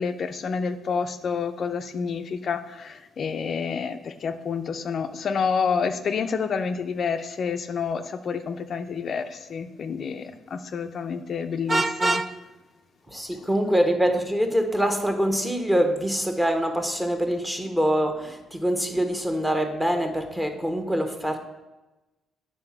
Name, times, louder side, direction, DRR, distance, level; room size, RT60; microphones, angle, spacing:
voice 1, 0.0-12.2, left 6 dB, 55° left, 7 dB, 0.5 m, -29 dB
Vehicle horn car horn honking, 11.7-12.3, right 2 dB, 30° right, 0.5 m, -23 dB
voice 2, 13.1-21.4, equal, 10° right, 5 dB, 1.2 m, -24 dB
8.9 x 4.1 x 5.8 m, 1.1 s
cardioid pair, 90°, 0 cm